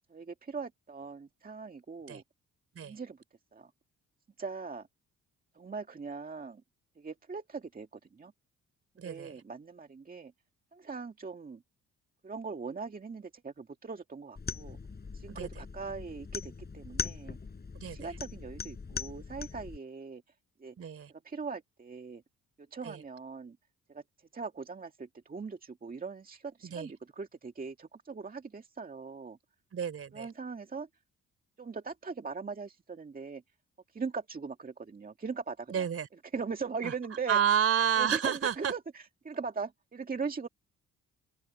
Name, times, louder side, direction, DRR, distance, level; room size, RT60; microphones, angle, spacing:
voice 1, 0.1-2.2 2.8-3.2 3.5-3.7 4.4-4.9 5.5-6.6 7.0-8.3 9.0-10.3 10.7-11.6 12.2-14.8 15.1-17.4 17.9-20.2 20.6-20.8 21.1-22.2 22.7-23.6 23.9-24.0 24.3-29.4 30.1-30.9 31.6-33.4 33.9-35.9 36.3-37.4 38.0-40.5, right 5 dB, 30° right, 2.1 m, -40 dB
voice 2, 9.0-9.3 15.3-15.5 17.7-18.1 20.8-21.1 22.8-23.0 26.6-26.9 29.7-30.3 35.7-36.1 36.8-36.9 37.3-38.7, right 8 dB, 50° right, 3.7 m, -30 dB
sound 1, 14.4-19.8, left 5 dB, 30° left, 6.4 m, -40 dB
cardioid pair, 90°, 30 cm